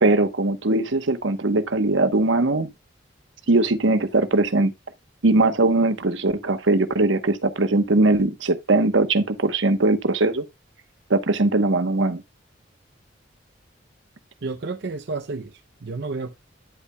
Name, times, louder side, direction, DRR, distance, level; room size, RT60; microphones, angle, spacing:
voice 1, 0.0-2.7 3.5-4.7 5.2-10.4 11.1-12.2, right 2 dB, 85° right, 1.0 m, -20 dB
voice 2, 14.4-16.3, right 3 dB, 65° right, 0.6 m, -31 dB
9.8 x 8.3 x 2.3 m
head